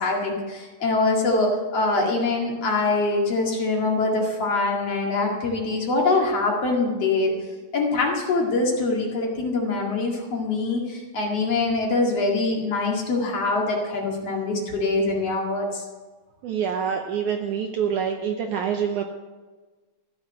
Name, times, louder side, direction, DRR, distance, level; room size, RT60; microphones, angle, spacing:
voice 1, 0.0-7.3 7.7-15.9, left 3 dB, 45° left, -1 dB, 2.9 m, -24 dB
voice 2, 16.4-19.0, right 7 dB, 75° right, 3 dB, 2.0 m, -26 dB
15.0 x 7.1 x 8.0 m, 1.3 s
omnidirectional pair, 4.3 m